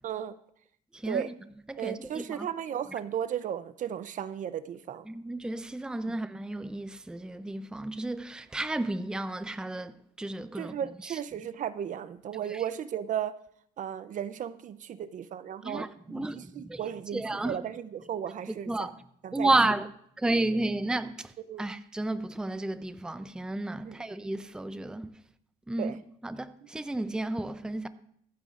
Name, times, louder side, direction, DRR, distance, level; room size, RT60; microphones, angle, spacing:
voice 1, 0.0-0.4 1.0-1.3 1.8-5.0 6.1-6.2 10.5-13.3 13.8-18.9 19.2-19.5 21.5-21.7 23.8-24.0 25.8-26.0, right 9 dB, 50° right, 0.6 m, -35 dB
voice 2, 0.9-1.3 1.7-2.5 5.1-10.8 11.0-11.2 12.3-12.6 15.6-16.8 17.1-17.6 18.5-18.9 19.3-19.9 20.2-25.1 25.7-26.0 26.2-27.9, right 2 dB, 5° right, 0.5 m, -32 dB
24.5 x 9.2 x 2.5 m
cardioid pair, 110°, 17 cm